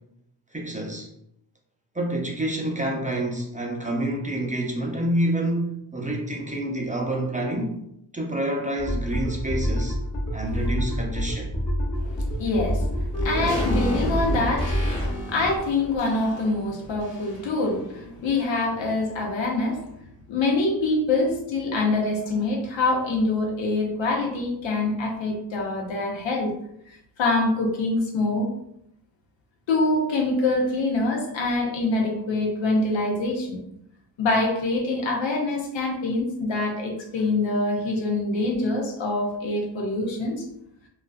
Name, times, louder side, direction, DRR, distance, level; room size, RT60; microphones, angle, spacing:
voice 1, 0.5-1.1 1.9-7.8 8.1-10.0 10.3-11.5, right 1 dB, 15° right, 0 dB, 0.5 m, -28 dB
sound 1, 8.8-15.1, equal, 35° left, 1.0 m, -27 dB
voice 2, 12.0-19.8 20.3-26.5 26.9-28.5 29.7-33.6 34.2-40.4, left 2 dB, 70° left, 0 dB, 0.8 m, -25 dB
sound 2, 13.1-17.6 17.9-18.0, right 1 dB, 10° left, 1.1 m, -31 dB
2.5 x 2.3 x 2.3 m, 0.77 s
supercardioid pair, 40°, 47 cm